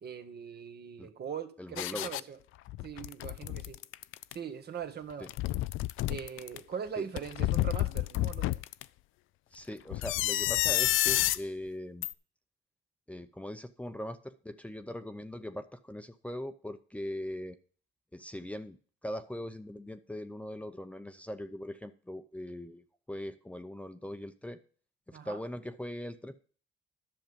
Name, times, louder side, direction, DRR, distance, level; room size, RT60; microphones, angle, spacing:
voice 1, 0.0-2.4 2.8-3.8 4.3-5.3 6.1-8.6 25.1-25.4, right 7 dB, 55° right, 7 dB, 1.5 m, -41 dB
voice 2, 1.6-2.1 5.2-5.3 7.0-7.1 9.5-12.1 13.1-17.6 18.1-18.8 19.0-24.6 25.1-26.4, left 1 dB, 5° left, 9 dB, 0.7 m, -40 dB
sound 1, 1.8-2.2 2.7-4.3 5.1-6.6 7.2-8.8 9.9-11.4 12.0-12.1, left 16 dB, 85° left, 0.4 m, -30 dB
10.5 x 6.5 x 5.3 m, 0.43 s
cardioid pair, 90°, 20 cm